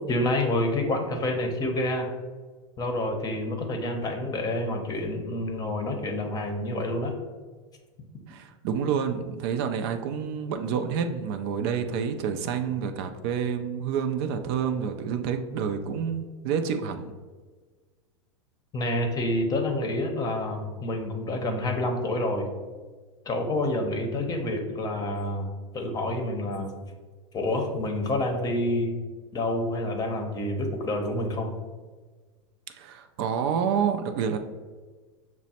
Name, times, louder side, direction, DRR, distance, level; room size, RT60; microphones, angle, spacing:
voice 1, 0.1-2.1 2.8-7.1 18.7-22.5 23.3-25.5 25.7-26.7 27.3-29.0 29.3-31.5, left 1 dB, 25° left, 4 dB, 0.7 m, -28 dB
voice 2, 8.3-17.1 32.7-34.4, right 7 dB, 50° right, 6 dB, 0.4 m, -28 dB
6.0 x 2.1 x 4.1 m, 1.4 s
supercardioid pair, 125°, 16 cm